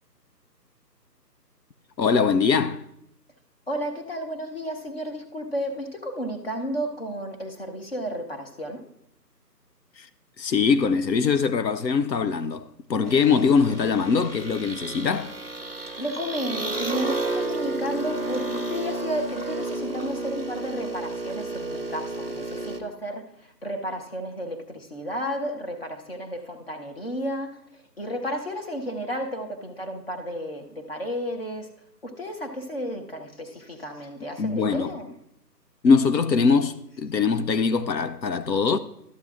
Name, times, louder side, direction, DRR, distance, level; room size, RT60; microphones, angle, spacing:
voice 1, 2.0-2.8 10.0-10.1 10.4-15.3 34.2-34.9 35.8-38.8, left 5 dB, 85° left, 0.7 m, -22 dB
voice 2, 3.7-8.8 16.0-23.2 23.6-27.6 28.0-31.7 32.0-35.1, equal, 35° left, 1.0 m, -32 dB
sound 1, 13.0-22.8, right 2 dB, 40° right, 0.5 m, -31 dB
13.0 x 8.1 x 2.4 m
figure-of-eight pair, 170°, 50 cm